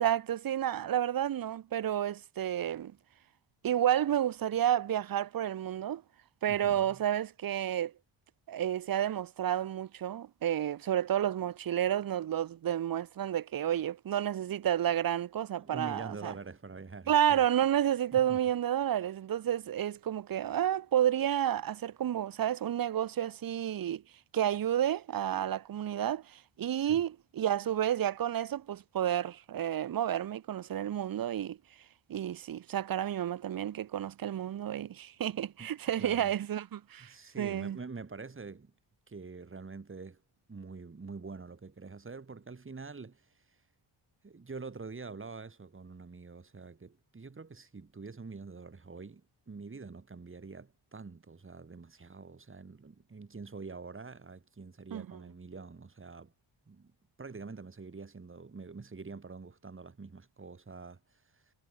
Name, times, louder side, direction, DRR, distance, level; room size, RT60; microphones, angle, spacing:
voice 1, 0.0-2.9 3.6-6.0 6.4-7.9 8.5-16.3 17.1-24.0 24.3-31.6 32.1-37.8 54.9-55.1, right 11 dB, 45° right, 0.8 m, -30 dB
voice 2, 6.5-7.0 15.6-17.4 18.1-18.4 26.8-27.0 35.6-35.7 36.0-36.3 37.0-38.7 39.1-40.2 40.5-43.6 44.2-56.3 56.7-56.9 57.2-61.5, right 4 dB, 25° right, 4.2 m, -46 dB
wide cardioid pair, 140°, 49 cm